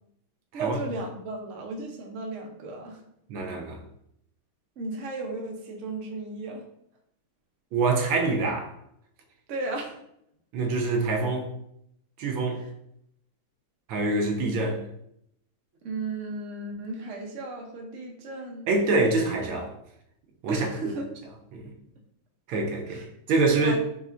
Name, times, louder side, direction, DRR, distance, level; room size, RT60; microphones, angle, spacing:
voice 1, 0.5-3.0 4.8-6.6 9.5-10.0 12.6-12.7 15.8-18.7 20.5-21.1 22.9-23.0 23.6-23.8, right 3 dB, 65° right, 0 dB, 0.7 m, -35 dB
voice 2, 3.3-3.8 7.7-8.7 10.5-11.5 12.2-12.6 13.9-14.8 18.7-19.7 20.4-20.7 21.5-21.7 22.5-23.8, right 3 dB, 80° right, 2 dB, 1.5 m, -25 dB
5.4 x 3.2 x 2.4 m, 0.74 s
omnidirectional pair, 2.3 m